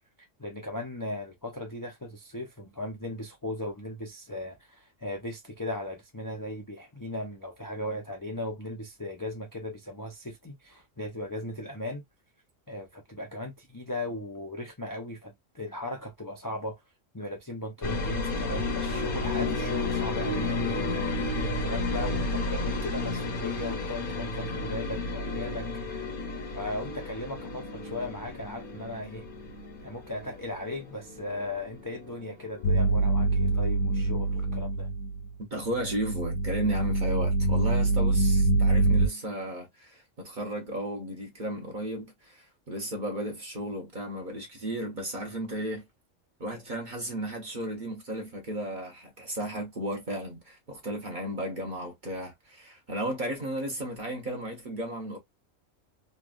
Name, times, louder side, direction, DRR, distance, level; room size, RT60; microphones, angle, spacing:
voice 1, 0.4-12.0 12.7-16.8 17.1-21.1 21.6-25.7 26.5-29.2 29.8-34.9, left 1 dB, 25° left, 0.5 m, -37 dB
sound 1, 17.8-33.6 33.9-34.7, left 2 dB, 50° left, 0.9 m, -32 dB
sound 2, 32.6-35.3 35.6-39.1, right 2 dB, 80° left, 1.0 m, -25 dB
voice 2, 35.5-45.9 46.4-55.2, right 1 dB, 40° right, 1.0 m, -34 dB
3.2 x 2.4 x 2.4 m
omnidirectional pair, 1.3 m